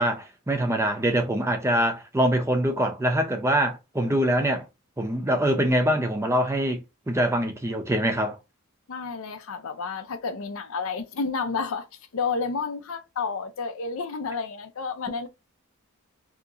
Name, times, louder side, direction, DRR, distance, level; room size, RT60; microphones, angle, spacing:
voice 1, 0.0-4.7 5.0-6.8 7.1-8.4, right 1 dB, 10° right, 0.6 m, -24 dB
voice 2, 8.9-11.9 12.1-15.3, left 4 dB, 70° left, 0.5 m, -30 dB
2.8 x 2.5 x 3.6 m
head